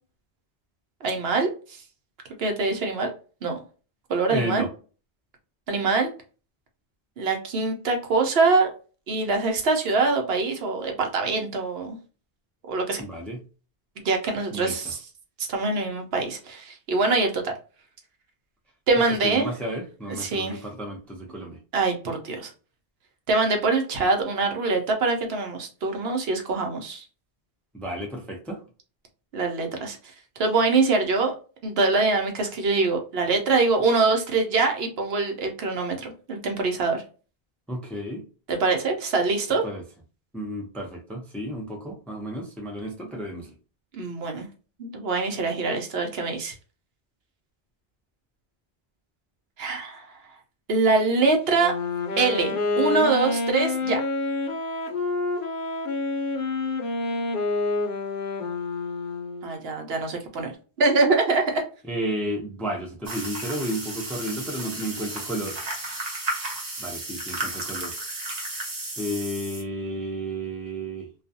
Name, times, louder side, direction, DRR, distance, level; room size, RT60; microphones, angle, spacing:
voice 1, 1.0-1.8 2.4-3.1 3.4-3.6 4.1-4.7 5.7-6.1 7.2-8.7 9.1-12.0 12.7-13.0 14.0-15.0 15.5-17.5 18.9-19.5 20.1-20.6 21.7-22.5 23.3-27.0 29.3-30.0 30.4-31.3 31.6-37.0 38.5-39.6 44.0-44.5 44.8-46.5 49.6-50.1 50.7-51.7 52.2-54.0 59.4-60.5 60.8-61.6, right 3 dB, 75° right, 4 dB, 0.9 m, -24 dB
voice 2, 4.3-4.7 13.0-13.4 14.5-14.7 19.2-21.6 27.7-28.6 37.7-38.2 39.6-39.8 40.3-43.5 61.9-65.6 66.8-67.9 69.0-71.1, right 1 dB, ahead, 1 dB, 0.4 m, -32 dB
Wind instrument woodwind instrument, 51.5-59.6, left 3 dB, 60° left, 0.8 m, -28 dB
sound 1, 63.1-69.6, right 2 dB, 45° right, 0.9 m, -33 dB
2.4 x 2.3 x 2.6 m, 0.36 s
omnidirectional pair, 1.1 m